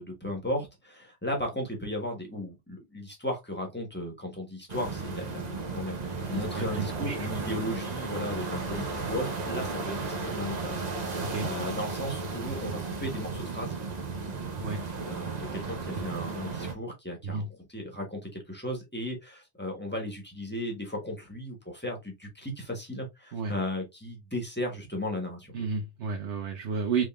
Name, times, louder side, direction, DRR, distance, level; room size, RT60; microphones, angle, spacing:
voice 1, 0.0-13.8 15.1-17.4 17.7-25.6, left 1 dB, 10° left, 1.3 m, -36 dB
sound 1, 4.7-16.7, right 4 dB, 40° right, 0.8 m, -34 dB
voice 2, 6.3-7.3 11.2-11.5 14.6-14.8 17.2-17.5 23.3-23.5 25.5-27.1, right 5 dB, 75° right, 1.1 m, -32 dB
3.6 x 3.5 x 2.4 m
omnidirectional pair, 1.2 m